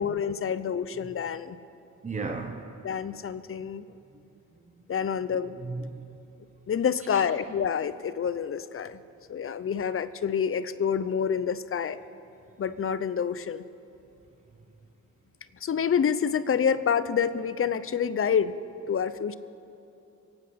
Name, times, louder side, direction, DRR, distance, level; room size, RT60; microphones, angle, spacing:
voice 1, 0.0-1.6 2.8-3.8 4.9-5.6 6.7-9.0 9.3-12.0 12.6-13.6 15.6-18.5 18.9-19.3, left 7 dB, 45° left, 14 dB, 0.6 m, -27 dB
voice 2, 2.0-2.7 4.5-5.1 5.6-6.1 7.1-7.2, right 4 dB, 25° right, 3 dB, 1.0 m, -37 dB
23.5 x 9.0 x 5.8 m, 2.9 s
cardioid pair, 90°, 30 cm